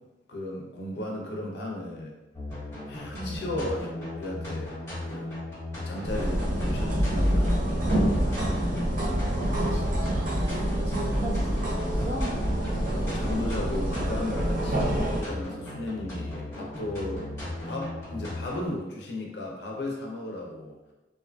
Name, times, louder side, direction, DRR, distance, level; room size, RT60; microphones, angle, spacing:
voice 1, 0.3-2.2 2.9-5.4 5.8-7.5 12.9-17.3 17.7-20.8, left 1 dB, 65° left, -1 dB, 0.5 m, -35 dB
sound 1, 2.3-18.7, left 1 dB, 15° left, 1.2 m, -37 dB
voice 2, 3.1-3.4 8.4-12.4, right 1 dB, 20° right, -9 dB, 0.9 m, -39 dB
sound 2, 6.0-15.2, equal, 50° right, 0.5 m, -27 dB
2.5 x 2.4 x 2.2 m, 1.1 s
head